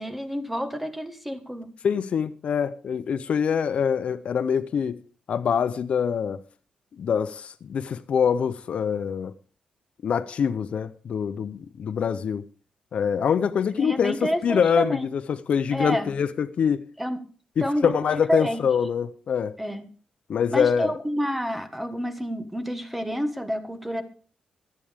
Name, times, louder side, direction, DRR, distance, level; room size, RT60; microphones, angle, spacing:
voice 1, 0.0-1.7 13.8-15.1 15.7-16.2 17.0-17.2 17.6-18.6 19.6-19.8 20.5-24.0, equal, 5° right, 1.5 m, -29 dB
voice 2, 1.8-5.0 5.3-6.4 7.0-9.3 10.0-12.4 12.9-16.8 17.6-19.6 20.3-20.9, left 7 dB, 55° left, 0.6 m, -25 dB
25.0 x 8.8 x 3.5 m
wide cardioid pair, 160°, 2 cm